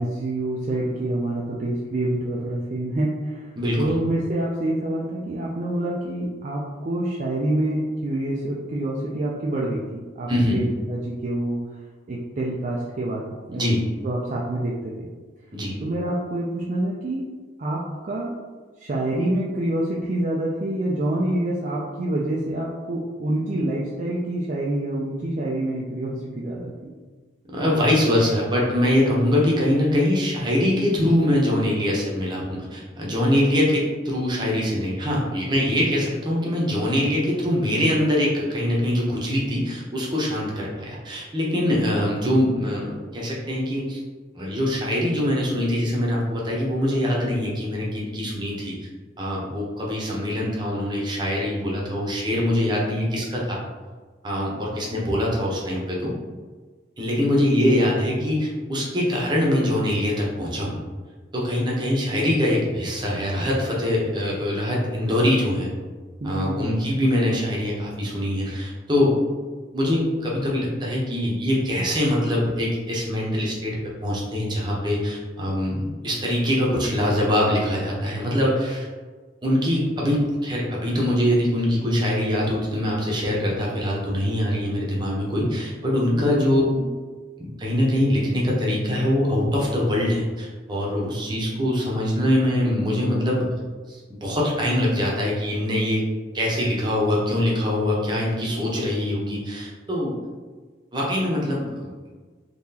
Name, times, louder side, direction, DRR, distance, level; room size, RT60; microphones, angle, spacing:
voice 1, 0.0-11.6 12.1-13.8 14.0-15.1 15.8-17.2 17.6-18.3 18.8-26.9 57.2-57.5 66.2-66.7 86.1-86.4 86.8-86.9, right 1 dB, 40° right, -4 dB, 0.4 m, -27 dB
voice 2, 3.6-3.9 10.3-10.6 13.5-13.8 15.5-15.8 27.5-44.0 44.3-48.7 49.2-53.6 54.2-56.1 57.0-60.8 61.3-65.7 66.2-69.2 69.7-78.9 79.4-86.6 87.4-93.5 93.9-96.0 96.3-100.2 100.9-101.9, left 1 dB, 25° right, -4 dB, 0.7 m, -23 dB
3.8 x 2.9 x 2.8 m, 1.4 s
head